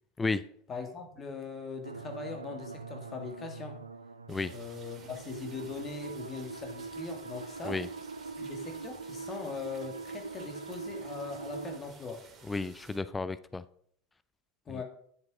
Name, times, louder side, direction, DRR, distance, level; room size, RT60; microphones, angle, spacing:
voice 1, 0.7-3.8 4.5-7.8 8.4-12.2 14.7-14.8, left 5 dB, 30° left, 5 dB, 2.2 m, -41 dB
sound 1, 1.8-11.8, right 4 dB, 85° right, 0.5 m, -42 dB
sound 2, 4.3-13.0, right 4 dB, 30° right, 3.2 m, -55 dB
voice 2, 12.5-13.6 14.7-14.8, left 3 dB, 15° left, 15 dB, 0.5 m, -33 dB
9.9 x 7.6 x 5.0 m, 0.65 s
figure-of-eight pair, 80°, 0 cm